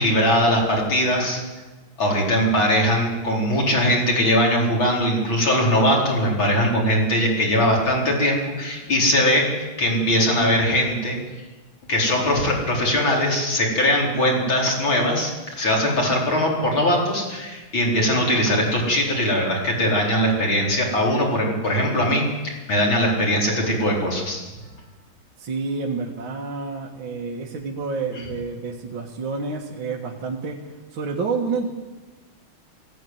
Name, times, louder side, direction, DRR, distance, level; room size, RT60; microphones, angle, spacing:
voice 1, 0.0-1.4 2.0-9.5 9.8-11.2 11.9-24.4 28.2-28.3, equal, 65° left, -2 dB, 5.2 m, -21 dB
voice 2, 25.4-30.6 30.9-31.7, right 4 dB, 65° right, 0 dB, 2.4 m, -29 dB
18.0 x 15.5 x 9.4 m, 1.2 s
omnidirectional pair, 2.3 m